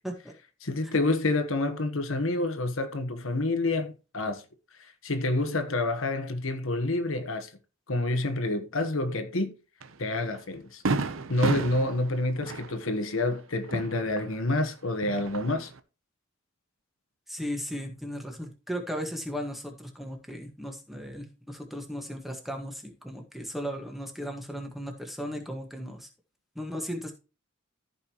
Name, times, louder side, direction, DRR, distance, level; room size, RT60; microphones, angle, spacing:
voice 1, 0.6-4.4 4.8-7.5 7.9-9.5 10.0-10.8 11.3-15.7, left 2 dB, 75° left, 1.2 m, -28 dB
Fireworks, 9.8-9.9 10.4-10.5 10.9-14.6 14.9-15.8, right 3 dB, 75° right, 0.8 m, -32 dB
voice 2, 17.3-26.1 26.5-27.1, equal, ahead, 1.5 m, -36 dB
14.0 x 5.4 x 3.0 m
head